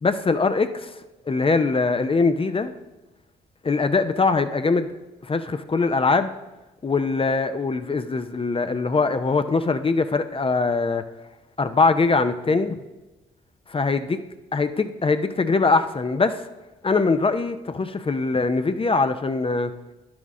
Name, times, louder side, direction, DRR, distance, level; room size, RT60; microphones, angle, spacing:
voice 1, 0.0-1.0 1.3-2.7 3.6-4.9 5.2-6.3 6.8-11.0 11.6-12.8 13.7-14.2 14.5-16.4 16.8-19.7, left 4 dB, 30° left, 9 dB, 0.6 m, -22 dB
10.5 x 6.1 x 3.7 m, 1.1 s
supercardioid pair, 50°, 19 cm